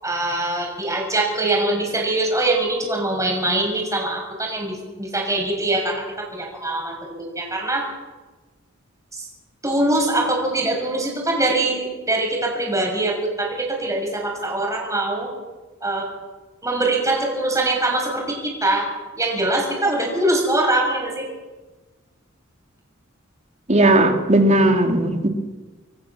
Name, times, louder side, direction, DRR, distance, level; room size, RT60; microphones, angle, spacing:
voice 1, 0.0-7.9 9.1-9.3 9.6-15.3 15.8-16.1 16.6-18.9 19.2-21.3, right 2 dB, 15° right, 0 dB, 6.6 m, -23 dB
voice 2, 23.7-25.3, right 1 dB, 35° right, 4 dB, 3.0 m, -16 dB
27.5 x 22.0 x 7.3 m, 1.2 s
head